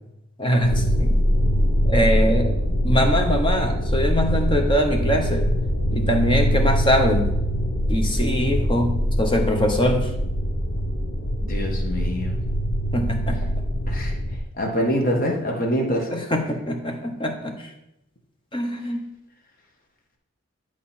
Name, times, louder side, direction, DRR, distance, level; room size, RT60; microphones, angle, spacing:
voice 1, 0.4-1.2 1.8-2.5 2.8-5.5 5.9-7.3 7.9-10.1 12.9-13.5 16.1-17.7 18.5-19.1, equal, 25° left, 3 dB, 1.0 m, -23 dB
sound 1, 0.6-14.4, equal, 65° left, 1.0 m, -23 dB
voice 2, 11.4-12.4 13.9-14.1 14.6-16.1, equal, 40° left, 1 dB, 1.4 m, -25 dB
11.0 x 4.7 x 4.3 m, 0.87 s
head